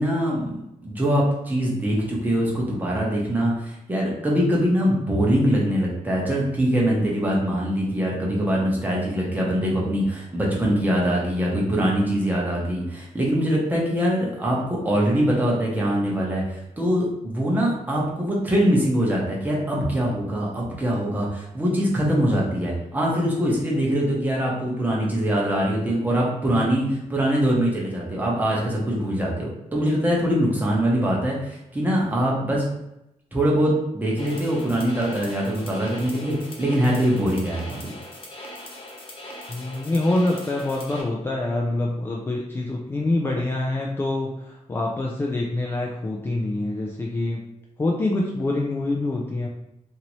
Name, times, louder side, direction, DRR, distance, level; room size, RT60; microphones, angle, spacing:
voice 1, 0.0-32.6 33.3-37.9, equal, 15° right, -4 dB, 0.9 m, -23 dB
sound 1, 34.2-41.0, left 1 dB, 45° left, 0.7 m, -40 dB
voice 2, 39.5-47.4 47.8-49.5, left 2 dB, 20° left, -2 dB, 0.3 m, -25 dB
2.9 x 2.6 x 2.9 m, 0.84 s
wide cardioid pair, 145°, 13 cm